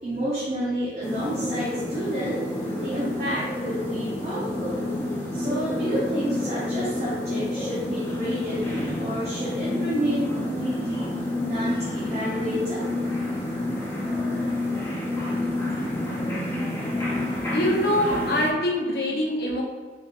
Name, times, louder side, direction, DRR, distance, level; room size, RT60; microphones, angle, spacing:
voice 1, 0.0-2.4 2.7-4.8 5.3-8.6 9.0-12.9, right 1 dB, 40° right, -9 dB, 0.9 m, -30 dB
sound 1, 1.0-18.5, left 1 dB, 15° left, 0.6 m, -29 dB
voice 2, 17.5-19.6, left 1 dB, 65° left, -2 dB, 0.8 m, -24 dB
4.0 x 3.1 x 2.5 m, 1.5 s
head